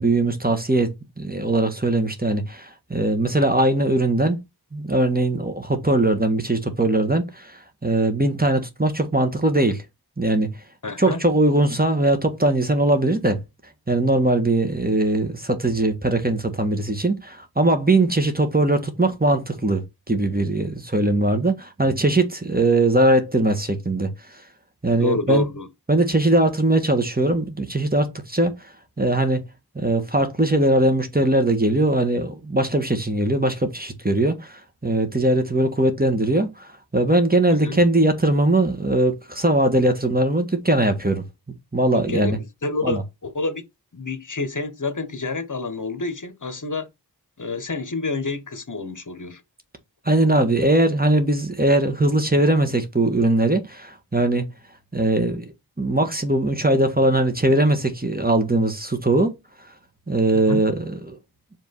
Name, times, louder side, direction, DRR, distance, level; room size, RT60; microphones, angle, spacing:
voice 1, 0.0-4.4 4.7-9.8 10.2-10.6 11.0-13.4 13.9-19.8 20.1-24.1 24.8-25.5 25.9-28.5 29.0-29.4 29.7-41.2 41.7-42.4 42.8-43.0 50.0-54.5 54.9-59.3 60.1-61.2, right 1 dB, 25° right, 1.4 m, -20 dB
voice 2, 10.8-11.2 25.0-25.7 37.5-37.8 41.9-42.4 42.6-43.6 43.9-46.9 47.4-49.4 60.3-60.6, left 3 dB, 50° left, 1.2 m, -28 dB
5.1 x 3.7 x 5.4 m
wide cardioid pair, 50°, 39 cm